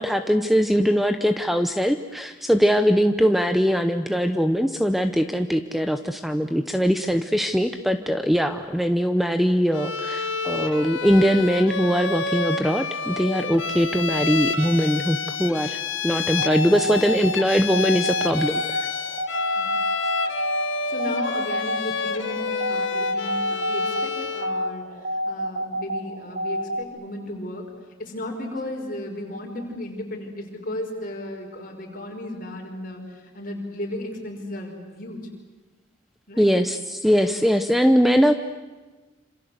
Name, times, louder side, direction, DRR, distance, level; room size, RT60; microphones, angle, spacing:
voice 1, 0.0-18.8 36.4-38.3, equal, ahead, 8 dB, 0.8 m, -21 dB
Bowed string instrument, 9.7-24.6, left 5 dB, 75° left, 1.6 m, -29 dB
sound 1, 16.3-26.8, equal, 55° right, 3.2 m, -29 dB
voice 2, 20.9-27.7 28.0-35.3 36.3-36.5, left 1 dB, 45° left, 1 dB, 5.7 m, -34 dB
27.0 x 27.0 x 8.1 m, 1.3 s
head